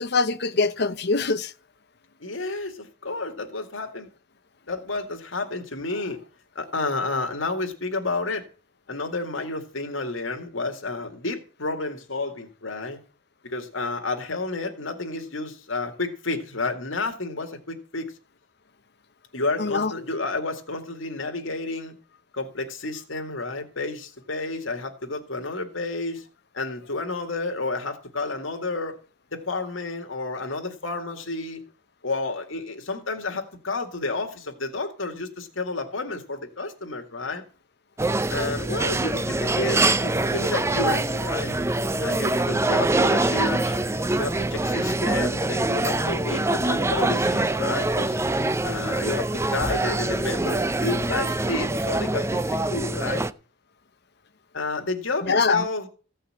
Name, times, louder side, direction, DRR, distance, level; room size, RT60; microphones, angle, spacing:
voice 1, 0.0-1.5 19.6-19.9 55.3-55.6, left 4 dB, 60° left, 0.9 m, -23 dB
voice 2, 2.2-4.1 4.7-6.2 6.6-8.5 8.9-13.0 13.4-18.1 19.3-21.9 22.3-26.2 26.5-29.0 29.3-31.6 32.0-37.4 38.3-41.6 42.0-43.8 44.2-48.2 48.6-52.4 52.7-53.2 54.5-55.9, left 3 dB, 90° left, 2.1 m, -30 dB
sound 1, 38.0-53.3, right 2 dB, 15° right, 0.5 m, -24 dB
15.5 x 5.6 x 8.7 m
head